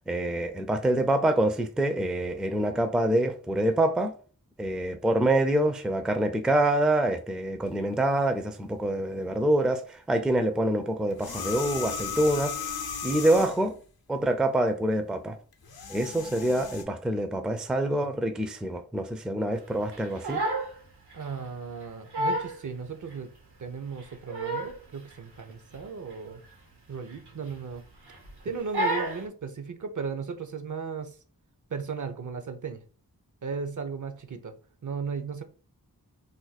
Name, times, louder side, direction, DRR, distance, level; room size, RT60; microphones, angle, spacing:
voice 1, 0.1-4.1 4.6-12.7 13.0-13.7 14.1-15.4 15.9-20.4, right 1 dB, ahead, 0.4 m, -26 dB
sound 1, 11.1-13.7 15.5-16.8, left 7 dB, 70° left, 0.6 m, -35 dB
Crying sobbing, 19.9-20.8 21.1-21.3 21.8-21.9 22.1-22.6 23.1-23.2 24.0-24.8 25.1-25.4 25.7-25.8 26.2-26.4 27.1-27.7 28.1-28.3 28.7-29.2, right 1 dB, 85° right, 1.2 m, -30 dB
voice 2, 21.1-23.3 23.6-26.4 26.9-27.8 28.4-31.2 31.7-32.8 33.4-34.5 34.8-35.4, right 5 dB, 55° right, 0.6 m, -36 dB
2.6 x 2.2 x 4.0 m
cardioid pair, 40°, 38 cm